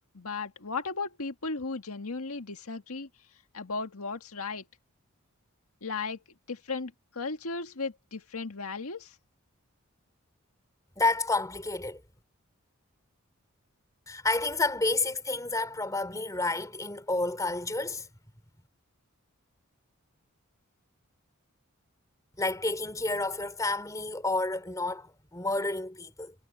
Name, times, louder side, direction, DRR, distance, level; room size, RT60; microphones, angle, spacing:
voice 1, 0.1-3.1 3.5-4.6 5.8-6.2 6.5-9.2, left 4 dB, 85° left, 1.7 m, -35 dB
voice 2, 11.0-12.0 14.1-18.1 22.4-26.3, left 2 dB, 15° left, 3.1 m, -30 dB
head